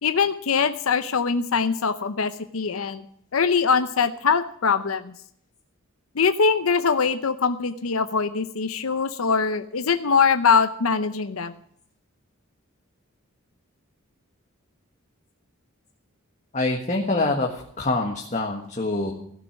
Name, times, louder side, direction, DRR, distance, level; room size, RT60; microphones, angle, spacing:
voice 1, 0.0-3.0 3.3-5.1 6.2-11.5, left 5 dB, 80° left, 10 dB, 0.7 m, -22 dB
voice 2, 16.5-19.1, left 2 dB, 35° left, 0 dB, 1.5 m, -25 dB
16.0 x 6.3 x 10.0 m, 0.66 s
head